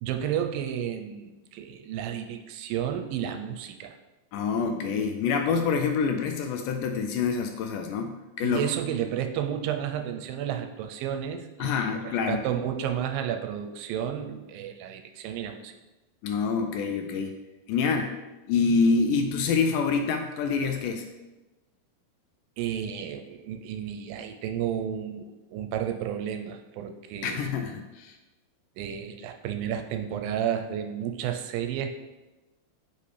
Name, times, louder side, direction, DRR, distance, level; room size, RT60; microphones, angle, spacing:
voice 1, 0.0-4.0 8.4-15.7 22.6-27.5 28.8-31.9, right 9 dB, 85° right, 6 dB, 2.3 m, -32 dB
voice 2, 4.3-8.6 11.6-12.4 16.2-17.4 17.7-18.2 18.5-21.1 27.2-28.2, left 5 dB, 80° left, 5 dB, 2.0 m, -26 dB
8.4 x 5.4 x 3.3 m, 1.1 s
omnidirectional pair, 4.1 m